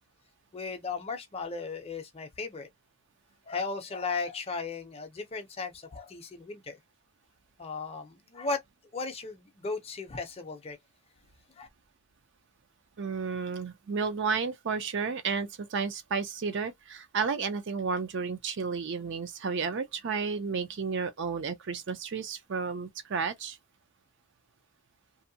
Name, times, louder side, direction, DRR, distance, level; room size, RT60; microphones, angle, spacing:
voice 1, 0.5-2.7 3.5-6.8 7.6-8.6 8.9-10.8 11.6-11.7, left 4 dB, 25° left, 0.5 m, -36 dB
voice 2, 13.0-23.6, right 5 dB, 55° right, 0.5 m, -32 dB
2.7 x 2.1 x 2.7 m
head